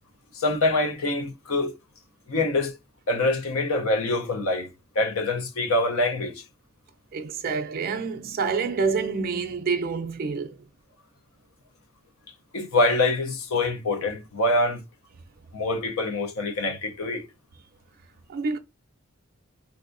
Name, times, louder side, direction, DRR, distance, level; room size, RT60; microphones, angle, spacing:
voice 1, 0.3-1.7 2.3-2.7 3.1-4.7 4.9-6.4 12.5-14.8 15.5-17.3, left 2 dB, 90° left, 0.6 m, -25 dB
voice 2, 7.1-10.6 18.3-18.6, right 5 dB, 45° right, 0.4 m, -27 dB
3.5 x 2.7 x 2.5 m
head